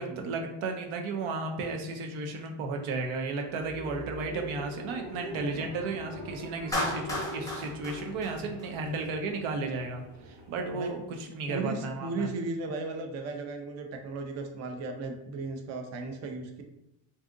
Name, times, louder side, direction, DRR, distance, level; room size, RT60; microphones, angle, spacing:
voice 1, 0.0-12.3, right 3 dB, 80° right, 4 dB, 0.7 m, -34 dB
sound 1, 3.2-11.7, right 1 dB, 65° right, 1.0 m, -44 dB
Clapping, 6.7-9.0, left 1 dB, 5° left, 0.6 m, -34 dB
voice 2, 11.5-16.6, right 3 dB, 35° right, 4 dB, 0.4 m, -36 dB
2.6 x 2.4 x 3.6 m, 0.87 s
cardioid pair, 125°, 47 cm